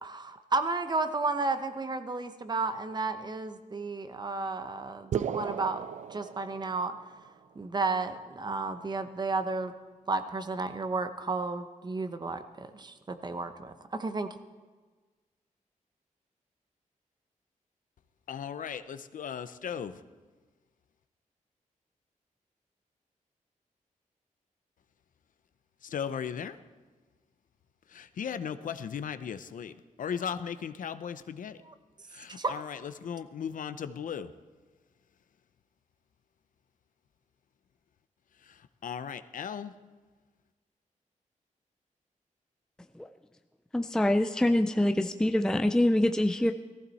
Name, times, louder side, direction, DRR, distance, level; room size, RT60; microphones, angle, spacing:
voice 1, 0.0-6.9 7.6-9.7 10.1-14.3 31.7-31.8 32.4-32.5, right 3 dB, 30° right, 9 dB, 0.9 m, -32 dB
sound 1, 5.1-7.1, right 8 dB, 60° right, 0.5 m, -35 dB
voice 2, 18.3-20.0 25.8-26.6 27.9-31.6 32.1-34.3 38.5-39.7, left 7 dB, 80° left, 12 dB, 0.7 m, -37 dB
voice 3, 43.7-46.5, left 1 dB, 5° left, 6 dB, 0.4 m, -25 dB
18.0 x 15.0 x 4.2 m, 1.4 s
wide cardioid pair, 140°, 14 cm